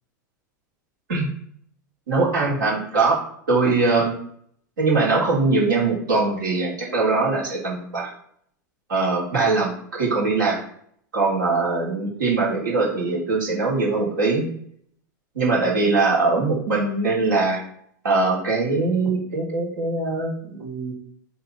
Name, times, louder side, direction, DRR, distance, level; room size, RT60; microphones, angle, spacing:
voice 1, 2.1-3.2 3.5-4.1 4.8-8.1 8.9-10.6 11.1-14.5 15.4-17.6 18.0-20.9, right 3 dB, 80° right, -4 dB, 3.6 m, -22 dB
10.5 x 4.1 x 4.2 m, 0.66 s
hypercardioid pair, 100°, 10 cm